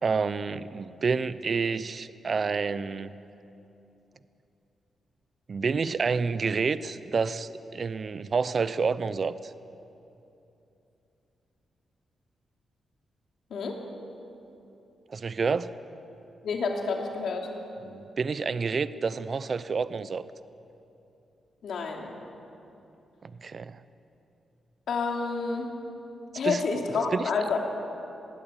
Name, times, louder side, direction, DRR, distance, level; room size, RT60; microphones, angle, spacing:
voice 1, 0.0-3.1 5.5-9.5 15.1-15.7 17.8-20.2 23.2-23.8 26.4-26.6 27.1-27.3, right 5 dB, 45° right, 15 dB, 0.7 m, -29 dB
voice 2, 16.4-17.5 21.6-22.1 24.9-25.8 26.3-27.6, left 4 dB, 75° left, 1 dB, 2.9 m, -29 dB
20.5 x 16.5 x 8.9 m, 2.9 s
cardioid pair, 115°, 0 cm